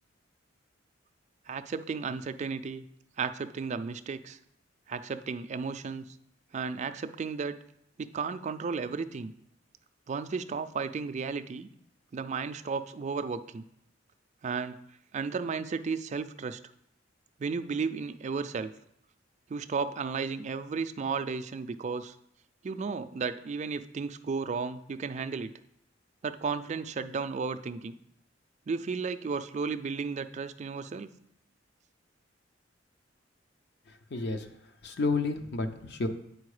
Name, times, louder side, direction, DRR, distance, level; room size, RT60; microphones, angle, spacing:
voice 1, 1.5-2.8 3.2-4.4 4.9-6.0 6.5-7.6 8.0-9.3 10.1-11.7 12.1-13.6 14.4-14.8 15.1-16.6 17.4-18.7 19.5-22.2 22.6-25.5 26.2-28.0 28.7-31.1, right 5 dB, 35° right, 10 dB, 0.3 m, -34 dB
voice 2, 33.9-34.5 34.8-36.1, left 3 dB, 60° left, 7 dB, 0.7 m, -31 dB
8.4 x 4.5 x 4.8 m, 0.74 s
head